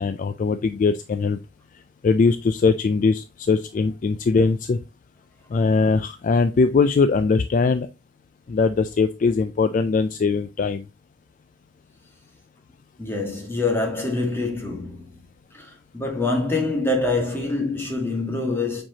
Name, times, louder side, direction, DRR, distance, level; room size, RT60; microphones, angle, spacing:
voice 1, 0.0-1.4 2.0-4.8 5.5-7.9 8.5-10.8, left 4 dB, 40° left, 0.3 m, -21 dB
voice 2, 13.0-15.2 15.5-18.8, left 3 dB, 10° left, 1.7 m, -25 dB
7.4 x 4.5 x 2.9 m
head